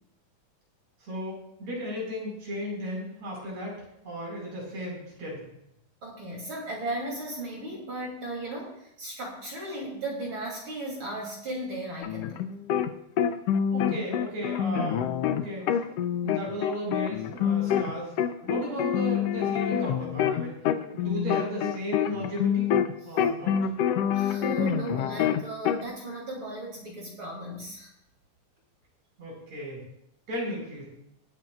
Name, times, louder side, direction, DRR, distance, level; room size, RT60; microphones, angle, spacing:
voice 1, 1.0-3.8 4.0-5.5 13.7-15.7 16.2-18.1 18.4-20.6 20.9-22.7 23.0-23.7 29.2-29.8 30.3-30.9, equal, 60° right, -3 dB, 6.3 m, -35 dB
voice 2, 6.0-12.4 23.1-23.3 24.1-27.9, right 1 dB, 40° right, -3 dB, 3.6 m, -36 dB
sound 1, 12.0-12.9 13.2-17.9 18.2-22.9 23.2-25.8, left 9 dB, 75° left, 1.5 m, -26 dB
25.5 x 9.1 x 2.4 m, 0.78 s
omnidirectional pair, 3.5 m